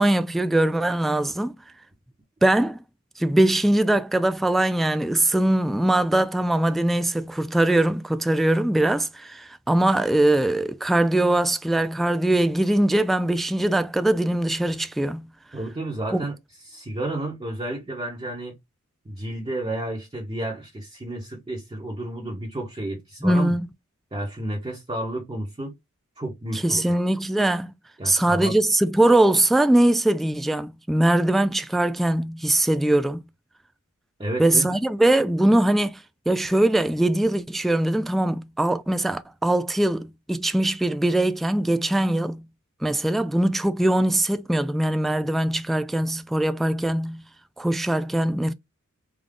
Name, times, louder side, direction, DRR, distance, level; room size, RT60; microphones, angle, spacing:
voice 1, 0.0-1.6 2.4-2.8 3.2-15.3 16.1-16.2 23.2-23.7 26.5-27.7 28.0-33.2 34.4-42.4 42.8-47.2 47.6-48.5, right 1 dB, ahead, 0.3 m, -21 dB
voice 2, 15.5-16.3 16.6-18.5 19.0-23.6 24.1-25.7 26.2-27.0 28.0-28.5 34.2-34.7, right 1 dB, 20° right, 1.1 m, -31 dB
3.7 x 2.3 x 3.5 m
wide cardioid pair, 45°, 30 cm